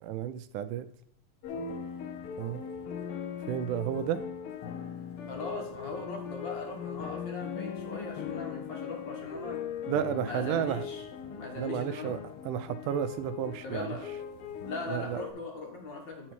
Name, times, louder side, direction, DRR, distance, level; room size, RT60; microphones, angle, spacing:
voice 1, 0.0-0.9 2.4-2.6 3.5-4.2 9.9-10.9 11.6-12.2 12.5-14.0 14.9-15.2, right 10 dB, 80° right, 12 dB, 2.1 m, -32 dB
sound 1, 1.4-15.3, left 7 dB, 75° left, 1.2 m, -39 dB
voice 2, 5.3-9.6 10.0-11.1 11.4-12.1 13.6-14.1 14.6-16.3, left 3 dB, 45° left, 2 dB, 1.7 m, -40 dB
10.5 x 4.5 x 4.4 m, 0.68 s
omnidirectional pair, 3.7 m